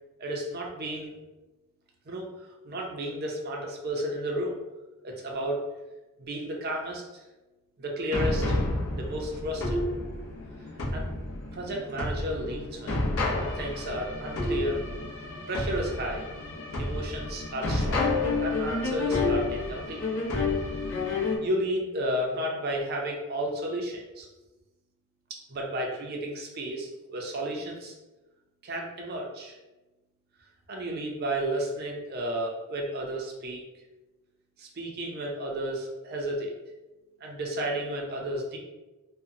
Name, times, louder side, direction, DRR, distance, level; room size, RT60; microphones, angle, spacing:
voice 1, 0.2-1.1 2.1-2.3 2.6-4.6 5.0-5.6 6.2-7.0 7.8-8.6 9.0-9.8 10.9-11.1 11.5-13.0 13.3-14.8 15.5-16.3 16.8-18.0 18.4-20.0 21.4-24.3 25.3-27.9 28.6-29.6 30.7-33.6 34.6-36.5 37.2-38.6, right 1 dB, 50° right, 0 dB, 0.5 m, -32 dB
sound 1, 8.1-21.4, left 2 dB, 65° left, 0.6 m, -30 dB
2.6 x 2.1 x 2.6 m, 1.1 s
head